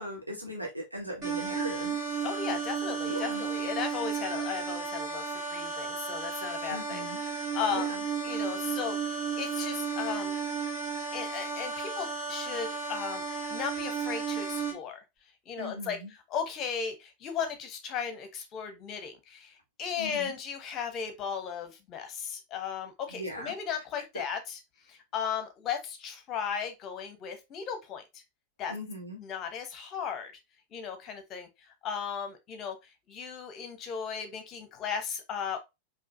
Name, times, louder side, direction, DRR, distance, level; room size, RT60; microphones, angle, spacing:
voice 1, 0.0-2.0 3.1-3.4 6.7-7.2 7.7-8.0 15.6-16.1 20.0-20.3 23.1-23.5 24.1-24.2 28.7-29.2, equal, 85° right, 1.4 m, -38 dB
sound 1, 1.2-14.7, right 5 dB, 35° right, 1.9 m, -33 dB
voice 2, 2.2-7.0 7.3-7.9 8.2-10.3 11.1-15.0 15.5-16.0 16.3-24.6 24.9-28.2 28.6-28.7 29.2-30.3 30.7-31.5 31.8-32.8 33.1-35.6, left 7 dB, 35° left, 0.9 m, -36 dB
4.8 x 2.6 x 2.6 m
figure-of-eight pair, 90°, 0 cm